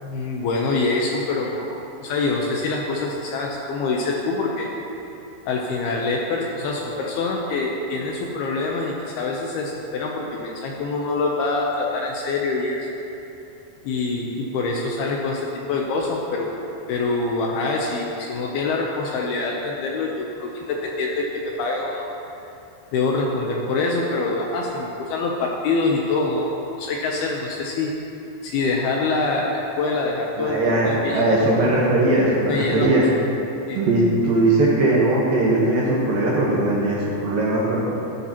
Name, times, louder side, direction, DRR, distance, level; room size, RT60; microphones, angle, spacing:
voice 1, 0.0-4.7 5.5-12.9 13.8-16.5 16.9-22.1 22.9-27.9 28.4-31.2 32.5-32.9 33.7-33.8, left 3 dB, 75° left, -1 dB, 2.4 m, -25 dB
voice 2, 30.4-33.0 33.7-37.9, right 2 dB, 65° right, -5 dB, 2.6 m, -19 dB
14.0 x 11.0 x 3.0 m, 3.0 s
omnidirectional pair, 5.2 m